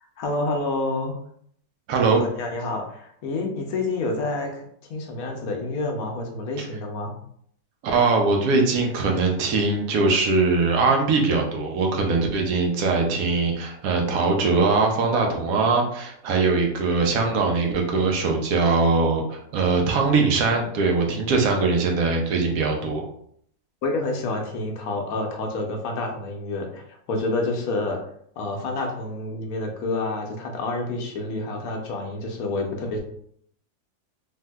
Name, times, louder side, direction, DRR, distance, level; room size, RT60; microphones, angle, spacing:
voice 1, 0.2-1.2 2.1-7.1 23.8-26.8 27.1-28.0 28.4-33.0, left 2 dB, 70° left, 2 dB, 1.1 m, -28 dB
voice 2, 1.9-2.2 6.6-6.7 7.8-23.0, right 3 dB, 70° right, 1 dB, 1.0 m, -21 dB
3.4 x 2.6 x 2.2 m, 0.66 s
omnidirectional pair, 1.7 m